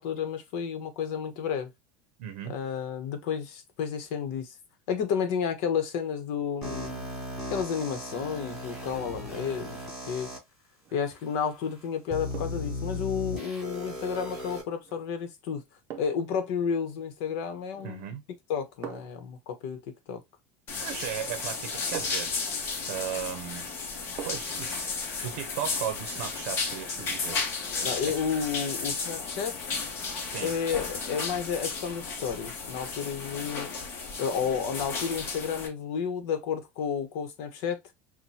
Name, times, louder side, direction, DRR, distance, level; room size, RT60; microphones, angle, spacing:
voice 1, 0.0-1.7 2.5-4.5 4.9-7.0 7.5-9.8 10.1-10.3 10.9-15.6 16.0-18.1 18.5-19.8 20.1-20.2 27.8-29.5 30.4-33.7 34.2-37.8, left 7 dB, 55° left, 1.0 m, -31 dB
voice 2, 2.2-2.5 17.8-18.2 20.8-22.6 22.9-23.7 24.2-27.4 28.0-28.1 30.3-30.5, right 10 dB, 70° right, 0.7 m, -36 dB
sound 1, 6.6-10.4 11.1-11.2 12.1-14.6, left 1 dB, ahead, 2.8 m, -37 dB
sound 2, 10.8-11.1 12.3-12.8 14.8-15.0 15.9-16.4 17.7-18.1 18.8-19.3 20.9-21.1 21.9-22.4 24.2-24.6 25.0-25.1, right 9 dB, 35° right, 0.6 m, -43 dB
sound 3, 20.7-35.7, left 4 dB, 35° left, 1.1 m, -34 dB
5.9 x 2.2 x 2.7 m
supercardioid pair, 160°, 7 cm